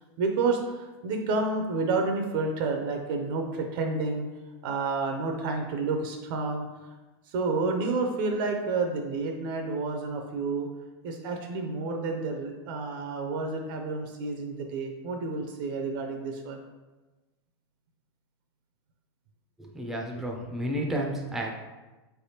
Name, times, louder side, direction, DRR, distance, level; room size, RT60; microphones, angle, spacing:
voice 1, 0.2-4.3 4.6-6.7 7.3-10.7 11.0-16.6, right 3 dB, 60° right, 3 dB, 0.5 m, -30 dB
voice 2, 19.6-21.5, right 1 dB, ahead, -1 dB, 0.4 m, -31 dB
4.2 x 3.4 x 2.8 m, 1.2 s
supercardioid pair, 150°, 13 cm